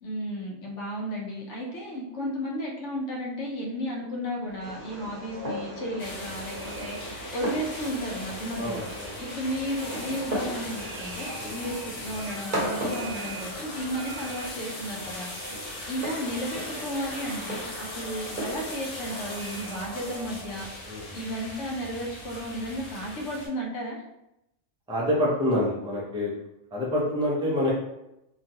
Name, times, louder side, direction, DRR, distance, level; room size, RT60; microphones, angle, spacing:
voice 1, 0.0-8.8 9.2-15.6 15.9-24.0, equal, 70° left, -1 dB, 1.0 m, -34 dB
Train, 4.5-21.1, equal, 70° right, 1.0 m, -45 dB
Fireworks, 4.6-19.8, right 1 dB, 40° right, 1.0 m, -38 dB
sound 1, 6.0-23.5, left 1 dB, 85° left, 1.4 m, -40 dB
voice 2, 8.6-9.1 11.4-11.5 20.8-21.1 24.9-26.3 26.7-27.7, left 1 dB, 5° right, -5 dB, 0.5 m, -27 dB
3.0 x 2.3 x 2.7 m, 0.88 s
omnidirectional pair, 1.3 m